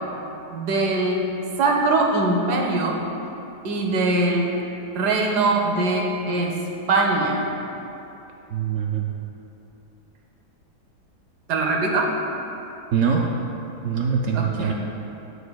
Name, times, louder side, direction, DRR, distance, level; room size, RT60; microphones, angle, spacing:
voice 1, 0.5-3.0 3.6-4.6 4.9-6.6 6.9-7.4 11.5-12.1 14.3-14.7, right 2 dB, 85° right, 1 dB, 1.4 m, -22 dB
voice 2, 8.5-9.1 12.9-13.3 13.8-14.7, right 7 dB, 70° right, 0 dB, 0.8 m, -23 dB
13.0 x 4.8 x 2.2 m, 2.9 s
omnidirectional pair, 1.7 m